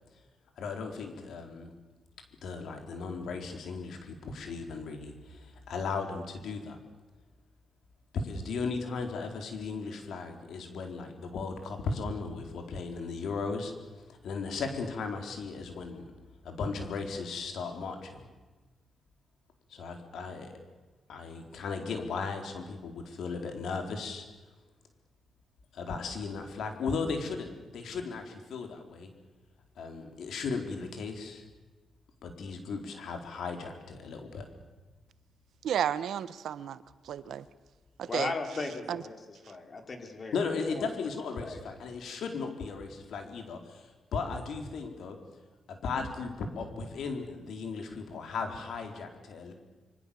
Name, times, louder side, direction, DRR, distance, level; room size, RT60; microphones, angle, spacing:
voice 1, 0.6-1.7 2.4-6.8 8.1-13.7 14.1-16.0 16.4-18.3 19.7-20.5 21.1-24.3 25.7-29.1 29.8-31.4 32.2-34.5 40.3-45.2 45.7-49.5, left 4 dB, 80° left, 4 dB, 4.3 m, -36 dB
voice 2, 35.6-36.8 37.1-37.4 38.0-38.3 38.9-39.0, right 9 dB, 80° right, 15 dB, 1.0 m, -32 dB
voice 3, 38.0-40.4 40.7-40.8 41.4-41.6, left 3 dB, 40° left, 4 dB, 4.5 m, -37 dB
26.0 x 24.5 x 7.2 m, 1.2 s
cardioid pair, 105°, 0 cm